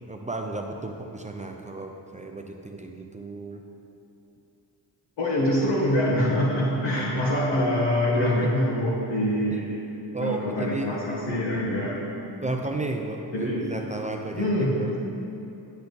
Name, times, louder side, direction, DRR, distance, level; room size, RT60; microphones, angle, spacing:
voice 1, 0.1-3.6 7.0-7.3 8.4-8.5 10.1-11.0 12.4-15.0, right 3 dB, 20° right, 3 dB, 0.4 m, -33 dB
voice 2, 5.2-9.8 10.2-12.3 13.3-13.7 14.3-14.7, left 1 dB, 75° left, -6 dB, 1.6 m, -25 dB
10.0 x 6.9 x 4.1 m, 2.8 s
cardioid pair, 130°, 42 cm